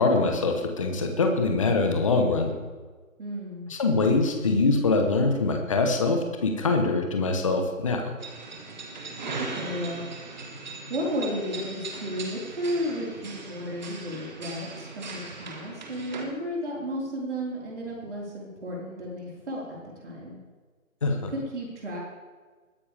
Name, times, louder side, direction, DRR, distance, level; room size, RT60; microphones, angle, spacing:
voice 1, 0.0-2.5 3.7-8.0 21.0-21.3, left 3 dB, 25° left, 4 dB, 1.0 m, -23 dB
voice 2, 3.2-3.7 9.4-10.0 10.9-20.4 21.3-22.0, equal, 55° right, -4 dB, 4.6 m, -33 dB
sound 1, 8.2-16.3, right 3 dB, 35° right, 1.6 m, -39 dB
21.0 x 9.9 x 3.5 m, 1.4 s
figure-of-eight pair, 160°, 41 cm